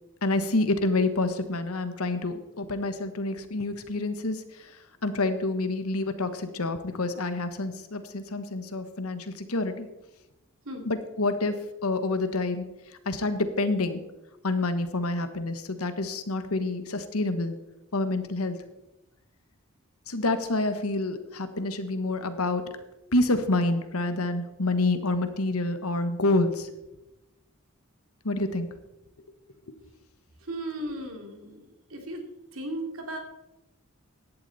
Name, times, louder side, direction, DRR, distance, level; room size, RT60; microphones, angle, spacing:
voice 1, 0.2-4.7 5.0-9.9 10.8-11.6 11.8-12.6 13.0-14.0 14.4-17.6 17.9-18.6 20.1-22.6 23.1-26.7 28.2-28.7, left 2 dB, 80° left, 10 dB, 1.3 m, -28 dB
voice 2, 30.5-31.6 31.9-32.2 32.5-33.2, right 1 dB, 70° right, 3 dB, 2.8 m, -35 dB
16.5 x 11.0 x 4.2 m, 0.99 s
head